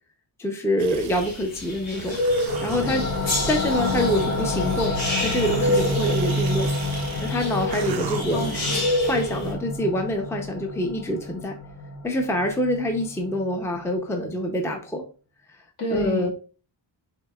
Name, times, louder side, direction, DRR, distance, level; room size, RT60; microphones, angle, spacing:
voice 1, 0.4-2.2 2.6-3.0 3.5-5.0 5.2-6.7 7.2-8.4 9.1-11.6 12.0-15.0 15.9-16.3, equal, 5° left, 3 dB, 0.6 m, -25 dB
sound 1, 0.8-1.4 2.0-8.7, right 8 dB, 60° right, 0.5 m, -36 dB
sound 2, 1.1-9.5, left 1 dB, 75° left, 2.2 m, -28 dB
sound 3, 2.5-13.8, left 2 dB, 35° left, 0.8 m, -29 dB
voice 2, 8.3-8.8 15.8-16.3, left 2 dB, 55° left, 2 dB, 1.3 m, -29 dB
6.6 x 2.7 x 2.3 m, 0.37 s
wide cardioid pair, 105°, 46 cm